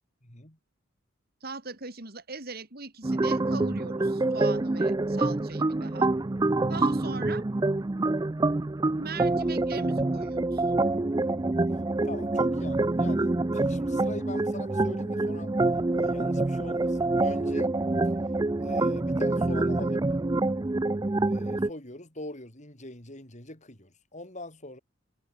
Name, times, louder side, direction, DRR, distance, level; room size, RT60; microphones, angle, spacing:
voice 1, 0.2-0.6 12.0-15.5 15.9-17.7 18.6-20.0 21.3-24.8, left 2 dB, 35° left, 5.1 m, -42 dB
voice 2, 1.4-6.1 6.5-7.4 9.0-10.6, right 3 dB, 45° right, 4.0 m, -39 dB
sound 1, 3.0-21.7, right 2 dB, 20° right, 0.4 m, -26 dB
head